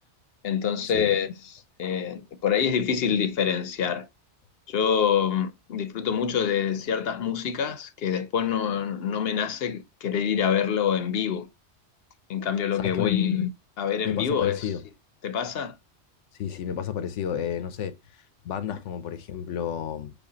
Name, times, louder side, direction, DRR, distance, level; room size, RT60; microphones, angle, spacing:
voice 1, 0.4-4.1 4.7-11.5 12.3-13.5 13.8-14.7 15.2-15.8 18.7-18.8, left 8 dB, 60° left, 0.8 m, -26 dB
voice 2, 12.8-13.2 14.0-14.8 16.4-18.0 18.4-20.1, left 9 dB, 90° left, 1.0 m, -31 dB
7.1 x 2.4 x 2.7 m
omnidirectional pair, 1.2 m